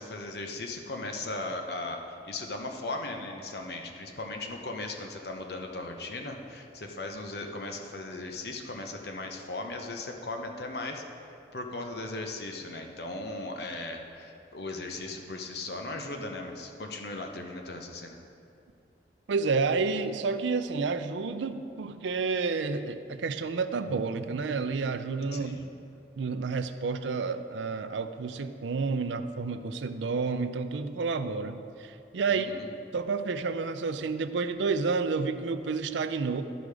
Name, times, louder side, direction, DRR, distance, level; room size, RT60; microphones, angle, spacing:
voice 1, 0.0-11.0 11.5-18.2 25.3-25.7 32.3-32.7, left 2 dB, 60° left, 3 dB, 0.8 m, -37 dB
voice 2, 19.3-25.7 26.2-32.5 32.9-36.4, right 4 dB, 85° right, 10 dB, 0.4 m, -30 dB
12.5 x 5.0 x 4.9 m, 2.6 s
head